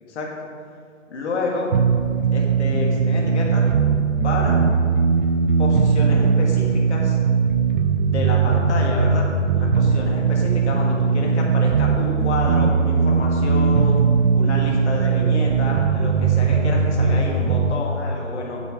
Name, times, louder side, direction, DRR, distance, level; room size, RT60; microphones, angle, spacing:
voice 1, 1.1-1.7 2.3-3.7 4.2-4.6 5.6-7.2 8.0-9.3 9.5-14.0 14.3-18.6, left 3 dB, 60° left, -2 dB, 1.9 m, -29 dB
sound 1, 1.7-17.7, right 5 dB, 40° right, 0.5 m, -19 dB
8.9 x 8.5 x 3.7 m, 2.2 s
hypercardioid pair, 145°, 39 cm